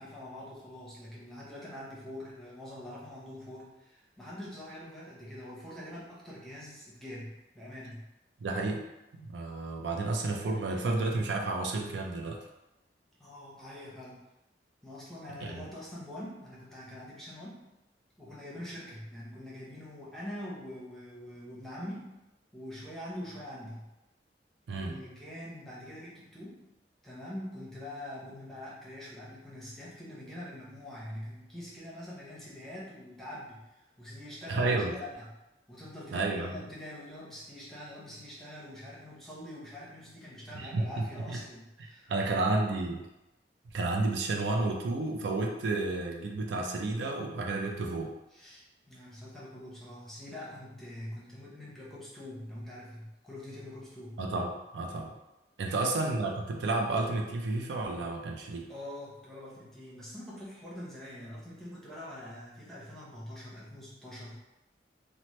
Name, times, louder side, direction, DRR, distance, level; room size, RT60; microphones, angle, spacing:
voice 1, 0.0-8.1 13.2-14.2 14.8-17.6 18.2-22.1 22.5-23.9 24.7-26.6 27.0-33.6 34.0-35.3 35.7-42.5 48.3-54.2 55.7-55.8 58.7-64.4, left 1 dB, ahead, -7 dB, 0.7 m, -44 dB
voice 2, 8.4-8.8 9.2-12.4 15.4-15.7 24.7-25.0 34.5-34.9 36.1-36.6 40.5-40.9 41.3-41.4 42.1-43.1 43.7-48.1 54.2-55.1 55.6-58.7, right 2 dB, 80° right, 1 dB, 0.4 m, -31 dB
2.9 x 2.0 x 3.0 m, 0.95 s
head